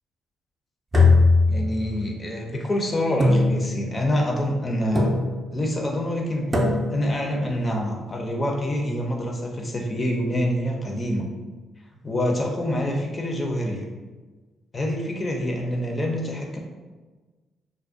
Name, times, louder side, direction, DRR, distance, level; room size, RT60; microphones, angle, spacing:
sound 1, 0.9-2.1 3.2-4.0 4.9-5.6 6.5-7.2, left 3 dB, 25° right, 0.4 m, -20 dB
voice 1, 1.5-5.2 5.5-6.6 6.9-11.2 12.0-13.8 14.7-16.6, left 1 dB, 30° left, 0 dB, 0.4 m, -26 dB
2.4 x 2.1 x 2.5 m, 1.3 s
cardioid pair, 90°, 0 cm